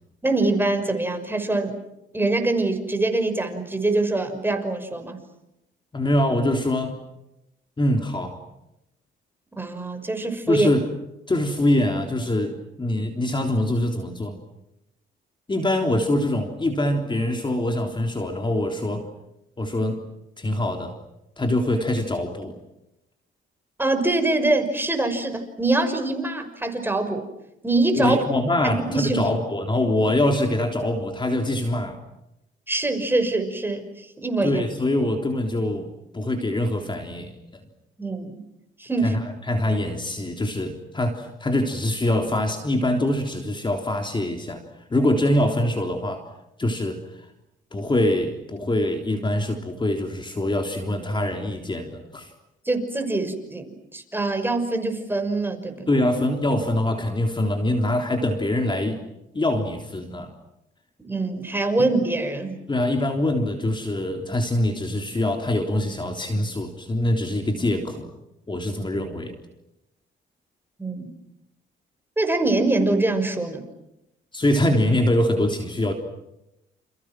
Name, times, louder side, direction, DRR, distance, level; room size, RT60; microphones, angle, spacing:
voice 1, 0.2-1.8 2.1-5.2 9.5-10.7 23.8-27.3 27.6-28.2 28.6-29.3 32.7-34.6 38.0-38.4 38.8-39.2 52.7-53.7 53.9-55.9 61.0-62.6 70.8-71.2 72.2-73.6, right 2 dB, 10° right, 6 dB, 5.9 m, -24 dB
voice 2, 5.9-7.0 7.8-8.4 10.5-10.8 11.3-14.4 15.5-19.1 19.6-20.0 20.4-20.9 21.4-22.6 28.0-32.0 34.4-37.3 39.0-44.6 44.9-46.3 46.6-47.0 47.7-52.3 55.9-59.0 59.3-60.3 62.7-68.1 68.5-69.4 74.3-75.9, left 1 dB, 25° left, 4 dB, 3.6 m, -24 dB
29.5 x 29.5 x 6.1 m, 0.88 s
cardioid pair, 90°, 20 cm